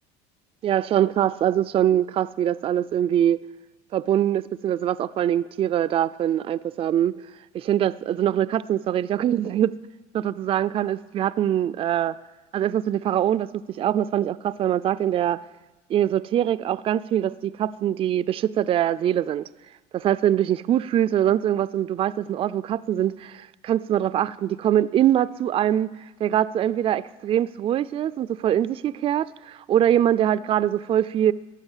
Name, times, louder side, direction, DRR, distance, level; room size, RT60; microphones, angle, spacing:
voice 1, 0.6-3.4 3.9-7.1 7.5-9.7 10.1-12.2 12.5-15.4 15.9-19.5 19.9-25.9 26.2-31.3, right 11 dB, 35° right, 0.4 m, -23 dB
15.5 x 11.0 x 7.3 m
cardioid pair, 125°, 17 cm